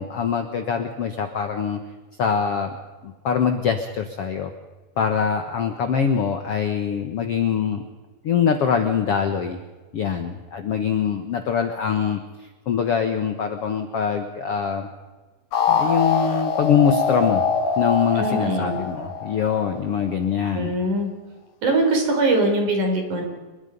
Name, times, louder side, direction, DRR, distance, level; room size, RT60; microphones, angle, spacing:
voice 1, 0.0-1.8 2.2-2.7 3.0-4.5 5.0-7.8 8.2-9.6 9.9-12.2 12.7-14.9 15.7-17.4 17.8-20.7, left 7 dB, 60° left, 6 dB, 1.6 m, -23 dB
sound 1, 15.5-20.0, left 5 dB, 80° left, 4.3 m, -23 dB
voice 2, 18.1-18.8 20.5-21.1 21.6-23.2, right 2 dB, 55° right, 3 dB, 5.6 m, -22 dB
27.0 x 22.5 x 5.4 m, 1.2 s
omnidirectional pair, 4.3 m